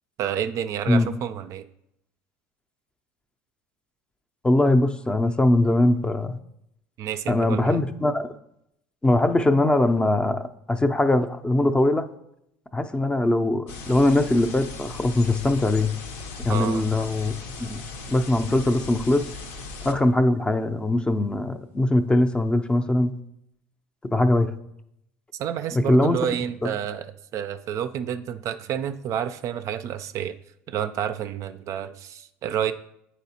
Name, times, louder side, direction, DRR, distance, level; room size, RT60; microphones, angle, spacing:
voice 1, 0.2-1.7 7.0-7.8 16.5-16.8 25.4-30.4 30.7-32.7, right 9 dB, 50° right, 11 dB, 0.3 m, -29 dB
voice 2, 4.4-6.4 7.3-8.3 9.0-12.1 12.7-15.9 16.4-17.8 18.1-19.3 19.8-23.1 24.1-24.5 25.7-26.2 26.6-26.7, left 1 dB, 15° left, 9 dB, 0.5 m, -21 dB
sound 1, 13.7-19.9, left 3 dB, 75° left, 0.8 m, -38 dB
8.9 x 4.2 x 2.8 m, 0.80 s
hypercardioid pair, 75°, 7 cm